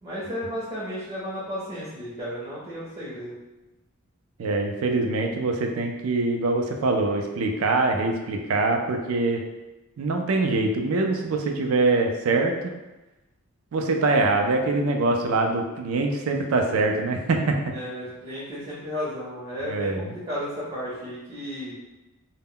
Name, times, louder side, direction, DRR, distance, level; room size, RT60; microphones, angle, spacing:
voice 1, 0.0-3.3 17.7-21.7, equal, 30° right, -8 dB, 0.6 m, -33 dB
voice 2, 4.4-9.4 10.0-12.7 13.7-17.5 19.7-20.1, right 3 dB, 70° right, 3 dB, 0.4 m, -24 dB
2.1 x 2.1 x 3.6 m, 1.1 s
head